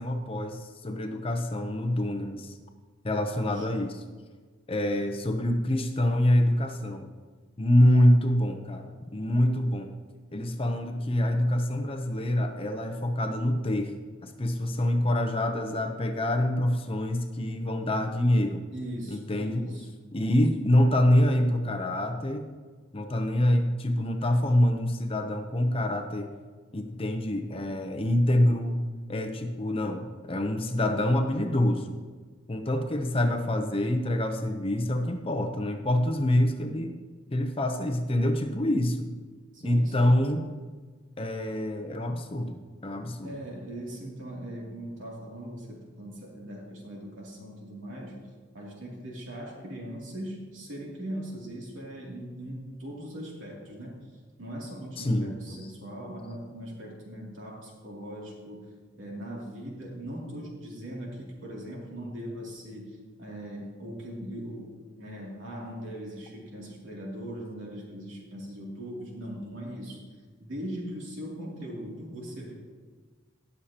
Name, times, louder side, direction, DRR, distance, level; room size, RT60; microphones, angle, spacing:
voice 1, 0.0-2.5 3.0-4.0 4.7-7.1 7.6-9.9 10.3-13.9 14.2-18.6 19.1-19.8 20.1-22.5 22.9-26.3 26.7-28.8 29.1-32.0 32.5-36.9 37.3-39.1 39.6-40.4 41.2-43.3 55.0-55.4, left 1 dB, 30° left, 6 dB, 0.7 m, -26 dB
voice 2, 3.3-3.8 18.7-19.9 39.5-40.2 43.2-48.2 48.5-54.1 54.4-58.7 58.9-70.0 70.4-72.5, equal, 70° right, -3 dB, 2.7 m, -40 dB
19.5 x 6.6 x 2.9 m, 1.4 s
head